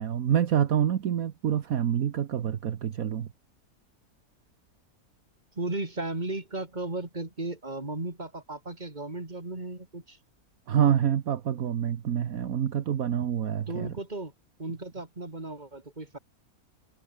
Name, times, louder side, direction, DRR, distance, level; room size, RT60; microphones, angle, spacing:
voice 1, 0.0-3.3 10.7-13.9, right 9 dB, 65° right, 1.5 m, -27 dB
voice 2, 5.5-10.2 13.7-14.3 14.6-16.2, right 2 dB, 30° right, 3.4 m, -35 dB
omnidirectional pair, 1.6 m